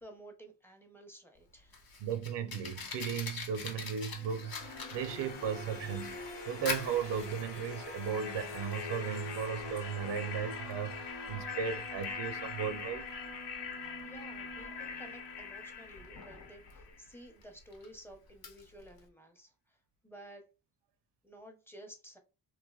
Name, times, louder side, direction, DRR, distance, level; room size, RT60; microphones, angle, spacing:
voice 1, 0.0-2.0 14.0-19.8 20.0-20.4 21.2-22.2, right 1 dB, 5° left, 0.6 m, -53 dB
Fire, 1.4-19.1, left 4 dB, 60° left, 0.8 m, -46 dB
voice 2, 2.0-13.1, right 7 dB, 90° right, 0.6 m, -36 dB
sound 1, 4.1-17.0, left 5 dB, 85° left, 0.9 m, -42 dB
3.3 x 2.5 x 2.3 m
wide cardioid pair, 140°, 41 cm